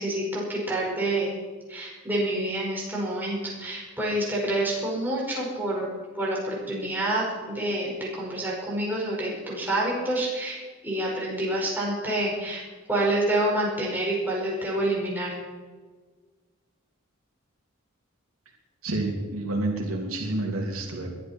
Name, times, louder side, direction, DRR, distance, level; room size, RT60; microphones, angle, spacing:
voice 1, 0.0-1.4 1.7-5.9 6.1-12.6 12.9-15.4, right 1 dB, 10° right, -5 dB, 5.1 m, -28 dB
voice 2, 18.8-21.1, right 2 dB, 85° right, 1 dB, 2.8 m, -29 dB
21.5 x 11.5 x 4.4 m, 1.4 s
head